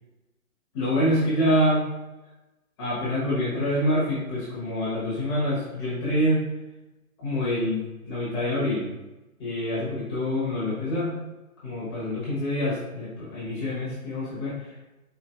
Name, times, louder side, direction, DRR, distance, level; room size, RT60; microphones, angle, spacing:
voice 1, 0.7-1.8 2.8-6.5 7.2-8.9 9.4-11.2 11.6-14.7, equal, 20° left, -9 dB, 1.0 m, -26 dB
4.4 x 2.8 x 2.5 m, 1.0 s
figure-of-eight pair, 135°, 44 cm